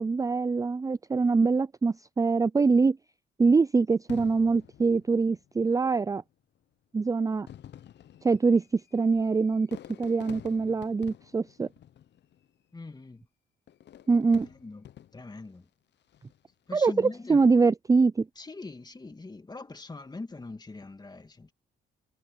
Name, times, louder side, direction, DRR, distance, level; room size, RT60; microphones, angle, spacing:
voice 1, 0.0-3.0 3.4-6.2 6.9-7.5 8.2-9.7 10.0-11.7 14.1-14.5 16.7-18.3, right 4 dB, 15° right, 0.4 m, -24 dB
Fireworks, 4.1-5.7 6.6-6.7 7.3-12.6 13.7-15.5 16.0-16.5, left 11 dB, 60° left, 0.9 m, -49 dB
voice 2, 12.7-13.2 14.4-14.8 15.1-15.7 16.7-17.5 18.4-21.5, left 3 dB, 20° left, 2.2 m, -42 dB
cardioid pair, 90°, 20 cm